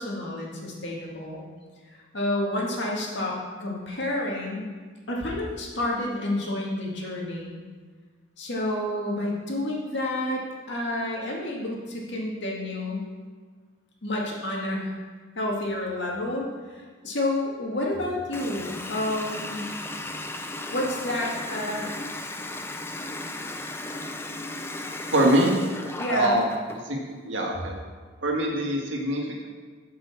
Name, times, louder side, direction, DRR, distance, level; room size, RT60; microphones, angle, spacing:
voice 1, 0.0-1.4 1.9-4.7 5.1-7.6 8.4-13.1 14.0-14.9 15.4-19.7 20.7-22.0 26.0-26.4, left 1 dB, 60° left, -3 dB, 2.2 m, -30 dB
Water tap faucet, 18.3-26.8, left 2 dB, 10° left, 0.5 m, -35 dB
voice 2, 25.1-25.5 26.1-26.4 26.8-27.8 28.2-29.5, right 1 dB, 65° right, -1 dB, 1.9 m, -24 dB
10.0 x 5.6 x 7.0 m, 1.5 s
head